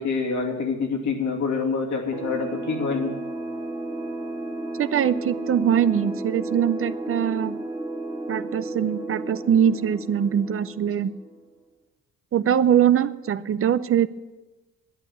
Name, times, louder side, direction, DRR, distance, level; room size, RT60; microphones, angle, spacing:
voice 1, 0.0-3.1, left 4 dB, 70° left, 1 dB, 2.8 m, -26 dB
sound 1, 2.1-11.4, right 2 dB, 15° right, 1.8 m, -33 dB
voice 2, 4.7-7.6 8.3-11.1 12.3-14.1, right 9 dB, 45° right, 14 dB, 0.6 m, -22 dB
11.0 x 9.4 x 9.2 m, 1.2 s
cardioid pair, 90°, 30 cm